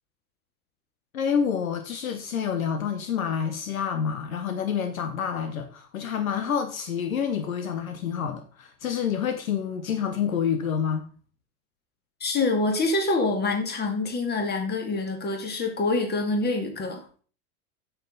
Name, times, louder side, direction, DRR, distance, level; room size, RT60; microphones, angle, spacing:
voice 1, 1.1-11.1, left 7 dB, 65° left, 1.1 m, -28 dB
voice 2, 12.2-17.0, left 3 dB, 20° left, 2.4 m, -26 dB
8.7 x 7.4 x 3.9 m
figure-of-eight pair, 85°, 44 cm